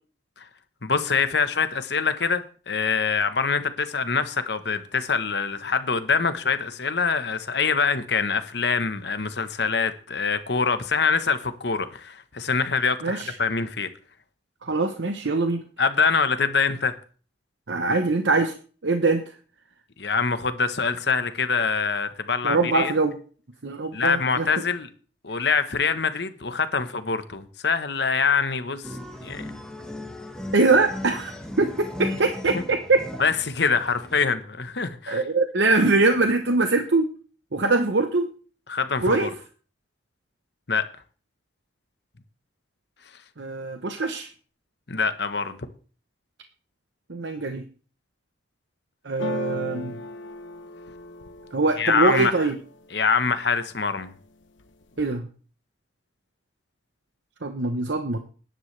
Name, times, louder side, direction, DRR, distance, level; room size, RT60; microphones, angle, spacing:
voice 1, 0.8-13.9 15.8-16.9 20.0-22.9 23.9-24.9 25.2-28.9 29.2-29.4 32.5-32.6 33.2-35.2 38.7-39.3 40.7-40.9 44.9-45.6 51.8-52.3 52.9-54.1, left 5 dB, 60° left, 1.1 m, -24 dB
voice 2, 13.0-13.3 14.6-15.6 17.7-18.5 18.8-19.2 22.4-23.2 23.6-24.5 30.5-31.3 31.6-33.0 35.1-37.1 37.5-38.3 39.0-39.3 43.4-44.3 47.1-47.6 49.0-50.0 51.5-52.5 55.0-55.3 57.4-58.2, right 3 dB, 70° right, 0.9 m, -23 dB
sound 1, 28.8-34.2, left 1 dB, 5° left, 1.8 m, -36 dB
sound 2, 49.2-53.1 53.5-54.1 54.4-55.2, left 2 dB, 85° left, 1.0 m, -37 dB
19.5 x 10.5 x 3.3 m
head